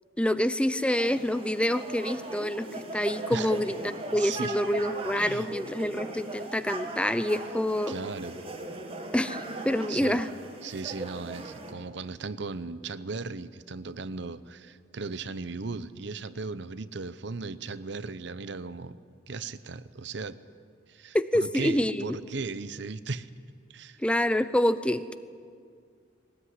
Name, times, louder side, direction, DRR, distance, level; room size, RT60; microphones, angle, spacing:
voice 1, 0.2-2.7 2.9-3.8 4.1-7.9 9.1-10.3 21.1-22.1 24.0-25.1, left 1 dB, 5° left, 13 dB, 0.6 m, -27 dB
sound 1, 0.9-11.7, right 2 dB, 30° right, 2.1 m, -39 dB
voice 2, 4.2-4.6 5.2-5.5 7.9-8.4 9.9-10.2 10.6-19.0 19.3-20.4 20.9-23.3 23.7-24.0, right 4 dB, 70° right, 14 dB, 0.8 m, -37 dB
20.0 x 18.5 x 9.7 m, 2.1 s
head